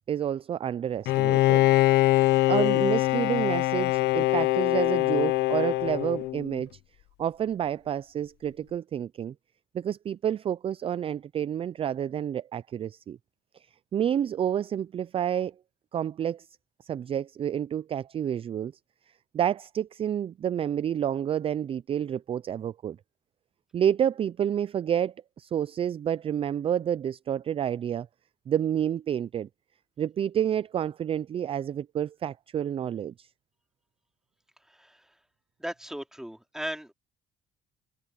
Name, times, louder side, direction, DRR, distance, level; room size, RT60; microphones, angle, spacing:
voice 1, 0.1-1.7 2.5-6.7 7.2-9.3 9.7-13.2 13.9-15.5 15.9-16.5 16.8-18.7 19.3-23.0 23.7-28.1 28.5-29.5 30.0-33.3, right 9 dB, 35° right, 0.4 m, -29 dB
Bowed string instrument, 1.1-6.6, left 18 dB, 80° left, 0.7 m, -23 dB
voice 2, 34.7-35.1 35.6-36.9, equal, 5° right, 2.7 m, -37 dB
cardioid pair, 110°, 17 cm